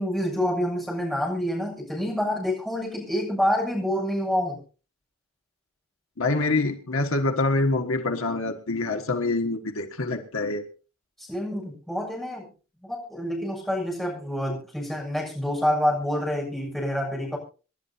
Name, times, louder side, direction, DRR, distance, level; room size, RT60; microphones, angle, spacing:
voice 1, 0.0-4.6 11.2-12.5 12.8-17.4, equal, ahead, -3 dB, 6.9 m, -27 dB
voice 2, 6.2-10.6, left 2 dB, 85° left, 5 dB, 1.6 m, -25 dB
27.5 x 11.5 x 2.8 m, 0.36 s
head